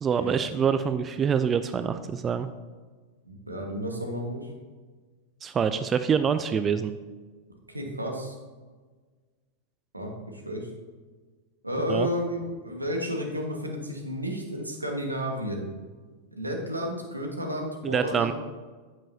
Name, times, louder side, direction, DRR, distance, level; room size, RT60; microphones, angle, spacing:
voice 1, 0.0-2.5 5.4-6.9 11.9-12.1 17.8-18.3, right 7 dB, 25° right, 11 dB, 0.4 m, -25 dB
voice 2, 3.2-4.5 7.7-8.3 9.9-10.7 11.6-15.7 16.3-18.3, equal, 85° right, 1 dB, 1.4 m, -32 dB
9.6 x 8.9 x 2.8 m, 1.4 s
figure-of-eight pair, 90°, 0 cm